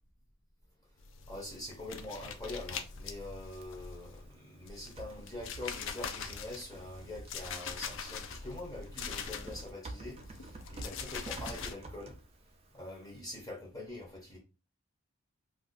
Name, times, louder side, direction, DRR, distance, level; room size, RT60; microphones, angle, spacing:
sound 1, 1.0-4.3 4.6-9.7 10.0-11.7, left 6 dB, 55° left, 0.4 m, -43 dB
voice 1, 1.3-12.2 12.7-14.4, left 1 dB, 15° left, 0.6 m, -44 dB
Typing, 2.1-13.2, right 2 dB, 25° right, 0.4 m, -50 dB
2.4 x 2.3 x 3.8 m
head